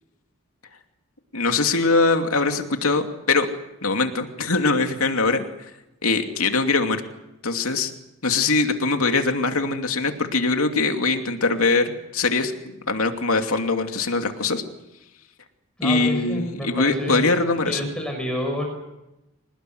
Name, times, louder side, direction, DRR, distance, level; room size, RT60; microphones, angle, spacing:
voice 1, 1.3-3.5 3.8-5.4 6.0-7.0 7.4-7.9 8.2-12.5 12.9-14.6 15.8-17.8, left 3 dB, 80° left, 5 dB, 2.7 m, -22 dB
voice 2, 15.8-17.2 17.6-18.6, equal, 5° left, 2 dB, 6.1 m, -28 dB
26.0 x 19.5 x 9.5 m, 0.93 s
head